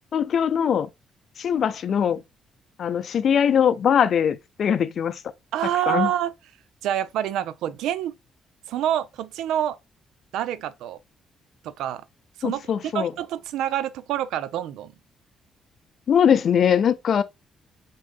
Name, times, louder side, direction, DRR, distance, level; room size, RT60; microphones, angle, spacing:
voice 1, 0.1-0.9 1.4-2.2 2.8-5.2 5.9-6.1 12.4-13.1 16.1-17.2, left 8 dB, 60° left, 0.5 m, -21 dB
voice 2, 5.5-6.3 6.8-8.1 8.7-9.8 10.3-11.0 11.6-12.0 12.4-12.6 12.9-14.9, right 11 dB, 85° right, 0.4 m, -27 dB
3.8 x 3.6 x 3.6 m
cardioid pair, 90°, 0 cm